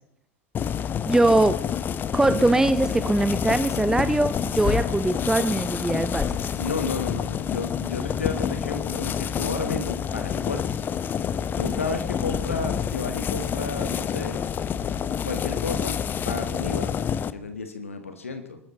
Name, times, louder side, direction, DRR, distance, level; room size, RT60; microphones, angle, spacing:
sound 1, 0.5-17.3, left 8 dB, 25° left, 0.8 m, -28 dB
voice 1, 1.0-1.6 2.1-6.3, right 2 dB, 5° right, 12 dB, 0.7 m, -22 dB
voice 2, 6.6-10.8 11.6-14.4 15.2-16.0 16.2-16.9 17.3-18.6, left 4 dB, 75° left, 8 dB, 1.6 m, -32 dB
25.5 x 13.0 x 4.0 m, 0.76 s
figure-of-eight pair, 80°, 7 cm